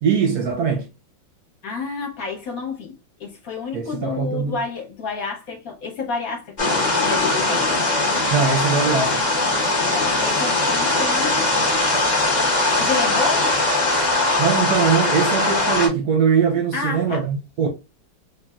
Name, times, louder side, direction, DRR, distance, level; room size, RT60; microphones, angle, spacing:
voice 1, 0.0-0.9 3.7-4.6 8.3-9.3 14.4-17.7, right 6 dB, 65° right, 1.0 m, -21 dB
voice 2, 1.6-7.8 9.8-11.5 12.7-13.6 16.7-17.2, left 4 dB, 55° left, 1.2 m, -30 dB
sound 1, 6.6-15.9, left 2 dB, 35° left, 0.7 m, -20 dB
3.3 x 2.6 x 2.3 m
omnidirectional pair, 2.2 m